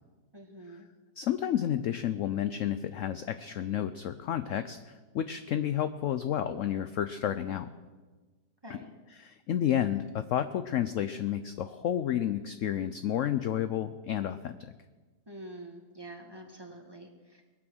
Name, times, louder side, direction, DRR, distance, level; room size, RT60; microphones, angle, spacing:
voice 1, 0.3-0.9 8.6-8.9 15.3-17.5, right 1 dB, 15° right, 1 dB, 1.5 m, -46 dB
voice 2, 1.2-7.7 8.7-8.8 9.2-14.6, left 10 dB, 70° left, 11 dB, 0.8 m, -31 dB
21.0 x 7.8 x 6.2 m, 1.3 s
omnidirectional pair, 1.8 m